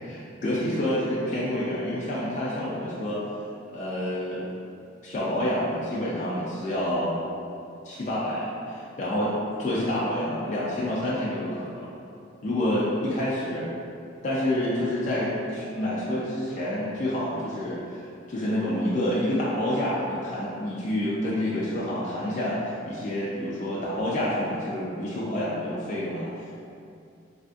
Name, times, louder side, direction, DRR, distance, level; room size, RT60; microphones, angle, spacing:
voice 1, 0.0-3.2 3.7-4.5 5.0-7.2 7.8-9.3 9.6-11.9 12.4-13.6 14.2-18.0 18.3-26.3, left 1 dB, 40° left, -7 dB, 0.4 m, -28 dB
3.5 x 2.5 x 2.3 m, 2.5 s
head